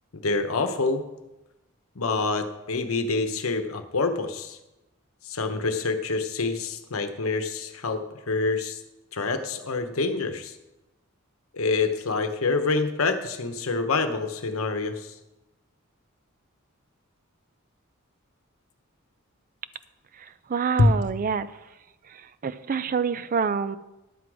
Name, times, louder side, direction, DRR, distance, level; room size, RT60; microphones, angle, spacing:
voice 1, 0.1-1.0 1.9-4.6 5.2-8.8 9.1-10.6 11.5-15.2 20.8-20.9, left 3 dB, 90° left, 8 dB, 0.9 m, -26 dB
voice 2, 20.1-21.5 22.1-23.8, right 6 dB, 40° right, 14 dB, 0.4 m, -27 dB
11.0 x 7.8 x 4.8 m, 0.99 s
head